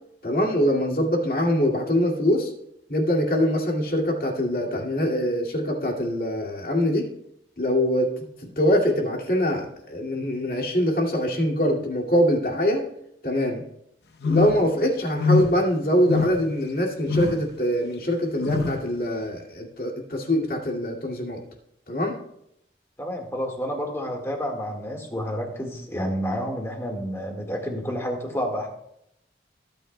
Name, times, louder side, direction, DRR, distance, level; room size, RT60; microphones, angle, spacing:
voice 1, 0.2-2.5 2.9-7.1 7.6-8.1 8.4-12.9 13.2-13.6 14.2-21.4 21.9-22.1, equal, 50° left, 0 dB, 2.3 m, -23 dB
sound 1, 14.2-14.7 15.2-15.6 16.0-16.5 17.1-17.5 18.4-18.9, left 4 dB, 70° left, 0.8 m, -24 dB
voice 2, 23.0-28.7, equal, 15° left, 1 dB, 1.7 m, -29 dB
16.5 x 8.9 x 2.2 m, 0.75 s
head